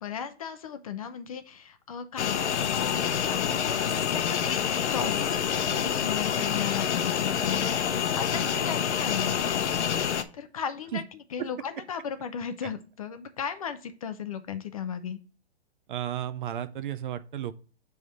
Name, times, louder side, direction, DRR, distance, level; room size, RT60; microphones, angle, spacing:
voice 1, 0.0-9.4 10.3-11.0 11.3-15.2, left 7 dB, 35° left, 0.4 m, -36 dB
sound 1, 2.2-10.2, left 8 dB, 90° left, 0.8 m, -27 dB
voice 2, 15.9-17.5, right 10 dB, 50° right, 0.5 m, -33 dB
6.2 x 3.5 x 5.3 m
hypercardioid pair, 160°, 33 cm